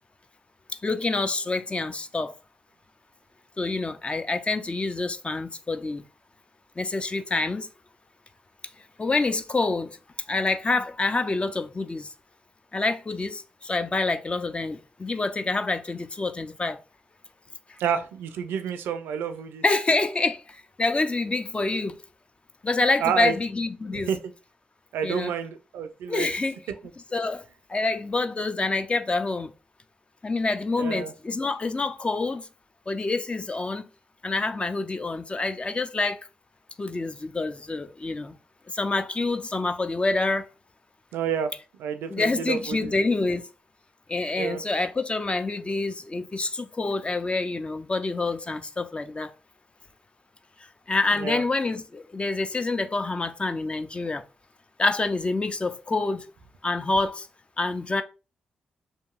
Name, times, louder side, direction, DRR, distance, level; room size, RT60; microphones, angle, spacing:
voice 1, 0.8-2.3 3.6-6.0 6.8-7.7 9.0-10.0 10.3-12.1 12.7-16.8 19.6-22.0 22.6-24.1 25.0-25.3 26.1-26.6 27.1-27.4 27.7-29.5 30.2-32.5 32.9-33.8 34.2-36.2 36.8-38.4 38.7-40.5 42.1-43.5 44.1-49.3 50.9-54.2 54.8-56.3 56.6-57.3 57.6-58.0, left 3 dB, 30° left, 0.4 m, -27 dB
voice 2, 17.8-19.6 23.0-23.3 23.9-24.2 24.9-26.3 30.8-31.1 41.1-41.5 41.8-42.9 44.4-44.6 51.1-51.4, right 8 dB, 80° right, 0.4 m, -29 dB
2.8 x 2.6 x 2.3 m
supercardioid pair, 40°, 4 cm